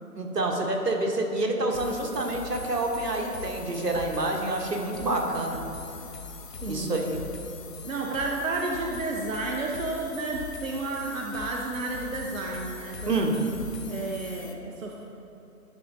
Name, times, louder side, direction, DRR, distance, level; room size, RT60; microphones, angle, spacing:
voice 1, 0.1-5.6 6.7-7.2 13.1-13.4, right 2 dB, 85° right, 1 dB, 1.3 m, -28 dB
sound 1, 1.7-14.5, left 5 dB, 85° left, 0.9 m, -42 dB
voice 2, 6.6-7.0 7.8-13.1 13.9-15.0, right 2 dB, 55° right, 0 dB, 0.7 m, -31 dB
10.5 x 4.1 x 3.7 m, 2.8 s
figure-of-eight pair, 165°, 47 cm